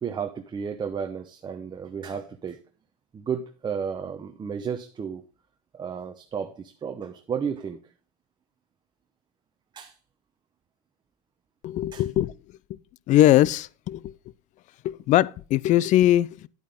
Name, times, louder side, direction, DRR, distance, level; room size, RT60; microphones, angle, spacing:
voice 1, 0.0-2.6 3.1-5.2 5.7-7.8 9.7-10.0 11.9-12.0, right 7 dB, 25° right, 0.9 m, -33 dB
voice 2, 11.6-12.3 13.1-14.1 14.8-16.5, left 13 dB, 40° left, 0.4 m, -21 dB
9.7 x 8.5 x 3.6 m
supercardioid pair, 105°, 19 cm